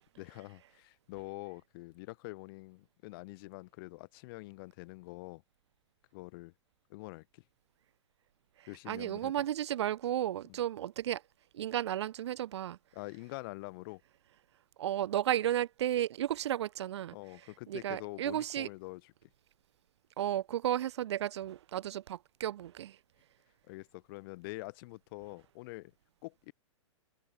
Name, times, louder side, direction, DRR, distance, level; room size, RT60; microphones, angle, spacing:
voice 1, 0.2-5.4 6.1-6.5 6.9-7.4 8.7-9.3 10.5-10.6 12.9-14.0 17.1-19.1 23.7-25.9 26.2-26.5, left 24 dB, 45° left, 4.0 m, -45 dB
voice 2, 8.6-11.2 11.5-12.8 14.8-17.1 17.7-18.7 20.2-23.0, right 12 dB, 60° right, 1.1 m, -33 dB
figure-of-eight pair, 110°, 16 cm